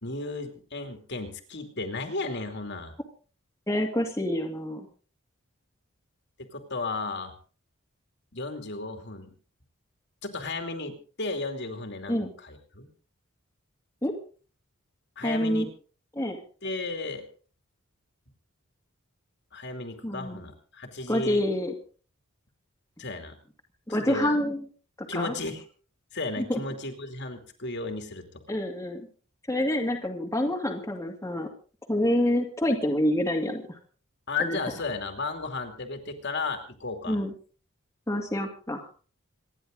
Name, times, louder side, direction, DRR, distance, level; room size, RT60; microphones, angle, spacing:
voice 1, 0.0-2.9 6.4-7.3 8.3-9.3 10.2-12.9 15.2-15.7 16.6-17.3 19.5-21.4 23.0-23.4 23.9-24.3 25.1-25.6 26.1-28.2 34.3-37.2, left 3 dB, 50° left, 5 dB, 2.7 m, -34 dB
voice 2, 3.7-4.9 12.1-12.3 14.0-14.1 15.2-15.7 16.2-16.4 20.0-20.4 21.1-21.7 23.9-24.6 25.0-25.3 26.4-26.6 28.5-29.0 29.5-31.5 31.9-33.8 34.4-34.6 37.1-37.3 38.1-38.9, left 1 dB, 15° left, 0 dB, 2.3 m, -27 dB
27.0 x 11.0 x 3.8 m, 0.39 s
head